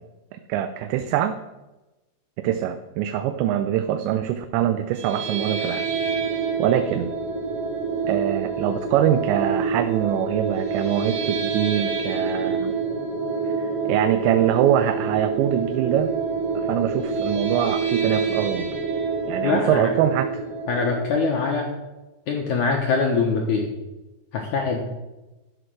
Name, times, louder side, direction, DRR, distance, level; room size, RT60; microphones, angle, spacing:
voice 1, 0.3-1.4 2.4-5.9 6.6-7.1 8.1-12.7 13.4-16.1 16.6-18.8 19.3-20.3, right 11 dB, 85° right, 8 dB, 2.8 m, -23 dB
sound 1, 4.9-21.1, right 5 dB, 40° right, 2.7 m, -27 dB
voice 2, 19.4-19.9 20.7-21.8 22.3-23.7 24.3-24.8, left 4 dB, 75° left, 1 dB, 1.8 m, -23 dB
12.0 x 7.7 x 6.3 m, 1.1 s
omnidirectional pair, 5.2 m